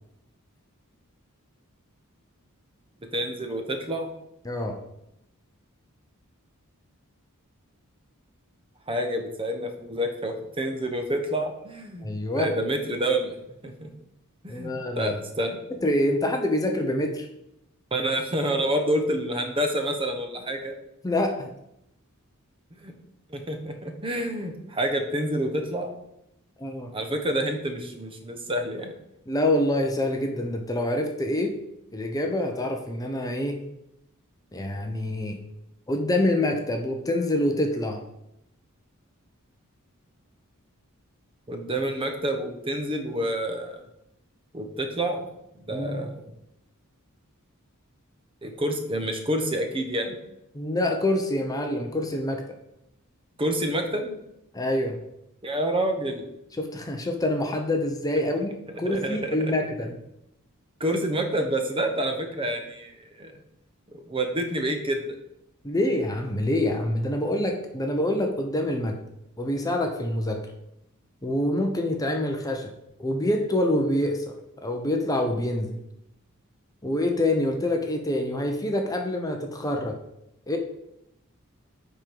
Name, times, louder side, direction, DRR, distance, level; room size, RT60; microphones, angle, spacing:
voice 1, 3.1-4.1 8.9-12.1 12.4-13.4 13.6-13.9 14.4-15.6 17.9-20.7 22.8-22.9 23.3-25.9 26.9-28.9 41.5-43.8 44.5-45.3 45.7-46.2 48.4-50.2 53.4-54.1 55.4-56.2 58.7-59.5 60.8-63.3 63.9-65.0, right 1 dB, 25° right, 5 dB, 0.9 m, -28 dB
voice 2, 4.4-4.8 12.0-12.5 14.5-15.2 15.8-17.3 21.0-21.5 26.6-26.9 29.3-31.5 31.9-33.6 34.5-35.4 35.9-38.0 45.7-46.1 50.5-52.4 54.5-55.0 56.6-60.0 65.6-69.0 69.4-70.5 71.2-72.7 73.0-74.3 74.6-75.8 76.8-80.0 80.5-80.6, left 1 dB, 15° left, 3 dB, 0.7 m, -26 dB
9.7 x 3.8 x 4.6 m, 0.82 s
head